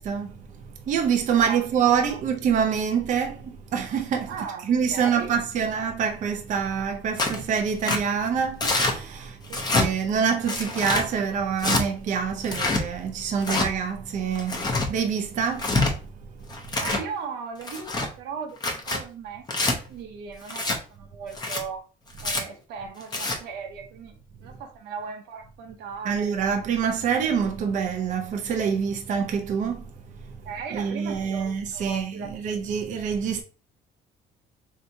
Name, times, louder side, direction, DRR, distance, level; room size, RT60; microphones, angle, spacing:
voice 1, 0.0-4.3 4.6-16.7 26.0-30.4 30.7-33.4, right 7 dB, 50° right, 0.5 m, -26 dB
voice 2, 1.3-2.2 4.3-5.3 9.5-9.7 16.8-21.9 22.2-24.1 24.4-26.3 30.5-32.8, right 6 dB, 85° right, 0.8 m, -38 dB
Tearing, 7.2-7.4 7.8-8.0 8.6-8.9 9.5-9.9 10.5-11.0 11.6-11.8 12.4-12.8 13.4-13.7 14.3-14.9 15.5-15.9 16.5-17.0 17.6-18.1 18.6-19.0 19.5-19.7 20.5-20.8 21.3-21.6 22.2-22.4 23.0-23.4, left 2 dB, 25° left, 0.7 m, -25 dB
3.4 x 2.8 x 2.6 m
cardioid pair, 110°, 17 cm